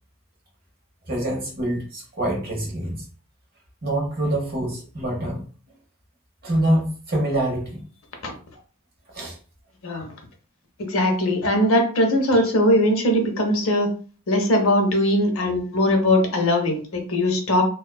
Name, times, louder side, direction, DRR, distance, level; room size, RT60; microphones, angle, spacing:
voice 1, 1.1-3.0 3.8-5.5 6.4-7.8 9.1-9.4, right 1 dB, 45° right, 0 dB, 0.9 m, -25 dB
voice 2, 10.9-13.9 14.3-17.6, left 1 dB, 65° left, 4 dB, 0.6 m, -20 dB
2.5 x 2.2 x 2.2 m, 0.39 s
head